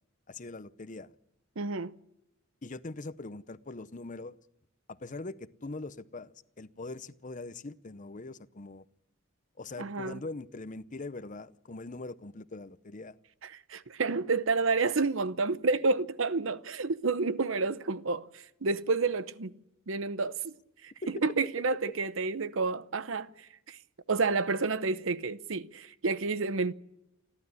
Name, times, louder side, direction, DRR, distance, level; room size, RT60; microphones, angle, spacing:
voice 1, 0.3-1.1 2.6-4.3 4.9-8.8 9.6-13.2 21.0-21.1, left 2 dB, 40° left, 0.8 m, -42 dB
voice 2, 1.6-1.9 9.8-10.2 13.4-19.5 19.9-20.5 20.8-20.9 21.2-23.8 24.1-26.7, right 4 dB, 70° right, 0.9 m, -30 dB
29.0 x 12.0 x 9.8 m
head